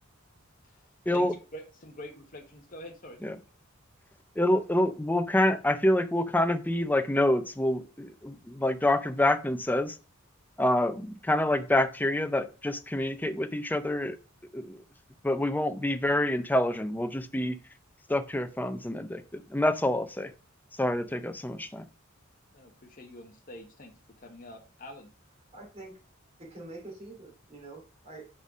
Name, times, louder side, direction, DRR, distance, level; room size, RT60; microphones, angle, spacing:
voice 1, 0.6-3.2 22.5-25.1, left 1 dB, 40° left, 1.2 m, -46 dB
voice 2, 4.4-10.0 10.6-14.2 14.5-14.8 15.2-17.6 18.1-20.3 20.8-21.9, left 1 dB, 10° left, 0.5 m, -27 dB
voice 3, 25.5-26.0 26.4-28.3, right 2 dB, 30° right, 2.7 m, -45 dB
5.3 x 4.3 x 6.1 m
head